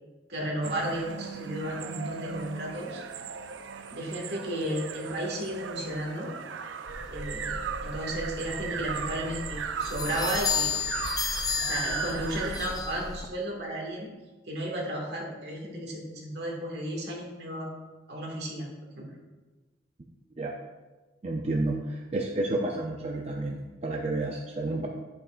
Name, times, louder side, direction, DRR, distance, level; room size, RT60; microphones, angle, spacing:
voice 1, 0.3-3.0 3.9-6.3 7.1-10.7 11.6-14.1 14.5-17.7 18.1-18.7 19.0-19.1, right 1 dB, 60° right, -1 dB, 1.8 m, -33 dB
sound 1, 0.6-12.7, right 6 dB, 90° right, 0.5 m, -37 dB
sound 2, 6.9-13.3, left 5 dB, 20° left, 0.4 m, -33 dB
voice 2, 21.2-24.9, right 2 dB, 35° right, 0 dB, 0.5 m, -30 dB
11.0 x 7.1 x 2.5 m, 1.2 s
head